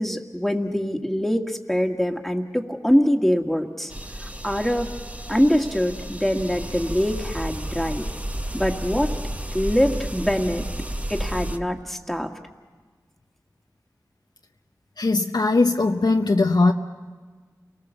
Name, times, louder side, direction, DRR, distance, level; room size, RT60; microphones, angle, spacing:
voice 1, 0.0-3.9 4.2-4.9 5.3-8.0 8.5-9.1 9.5-10.7 11.1-12.3, equal, 5° left, 3 dB, 1.8 m, -23 dB
sound 1, 3.9-11.6, right 1 dB, 20° right, 1.1 m, -32 dB
voice 2, 15.0-16.7, left 3 dB, 75° left, 3 dB, 0.8 m, -20 dB
29.5 x 19.0 x 7.0 m, 1.5 s
wide cardioid pair, 45°, 7 cm